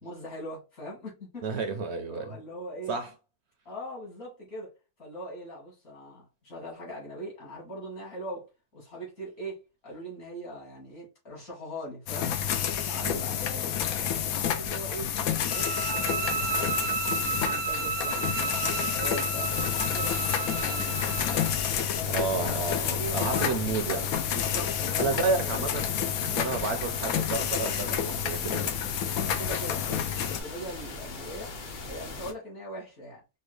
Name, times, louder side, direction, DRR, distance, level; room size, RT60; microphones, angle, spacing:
voice 1, 0.0-1.5 2.1-3.0 3.6-4.7 5.0-13.7 14.1-15.1 15.5-19.6 19.9-21.0 21.9-23.8 24.3-25.5 29.1-31.5 31.9-33.2, equal, 70° left, 2.8 m, -41 dB
voice 2, 1.4-2.4 2.9-3.1 13.0-13.2 22.1-24.1 25.0-28.7, right 4 dB, 60° right, 0.8 m, -31 dB
sound 1, 12.1-30.4, left 9 dB, 85° left, 1.1 m, -29 dB
sound 2, 15.5-21.6, right 6 dB, 80° right, 1.1 m, -32 dB
sound 3, 19.5-32.3, left 3 dB, 45° left, 0.7 m, -40 dB
5.3 x 2.2 x 3.2 m
omnidirectional pair, 1.5 m